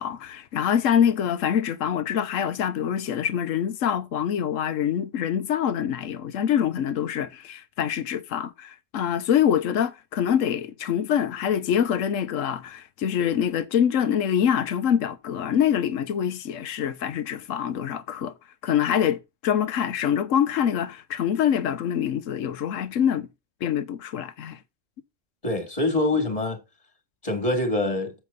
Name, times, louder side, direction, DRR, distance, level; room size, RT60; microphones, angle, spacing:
voice 1, 0.0-18.3 18.6-23.3 23.6-24.6, left 9 dB, 80° left, 1.2 m, -25 dB
voice 2, 25.4-26.6 27.2-28.1, left 2 dB, 30° left, 2.3 m, -24 dB
8.4 x 7.7 x 4.0 m
omnidirectional pair, 1.3 m